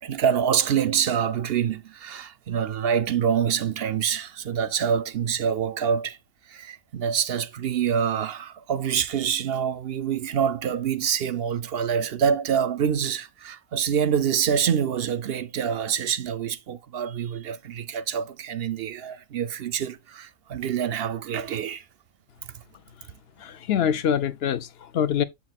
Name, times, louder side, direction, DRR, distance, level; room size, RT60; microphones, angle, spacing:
voice 1, 0.0-6.2 6.5-21.8, right 8 dB, 60° right, 0.7 m, -26 dB
voice 2, 23.4-25.2, left 9 dB, 55° left, 0.9 m, -25 dB
7.7 x 7.5 x 2.3 m
omnidirectional pair, 1.3 m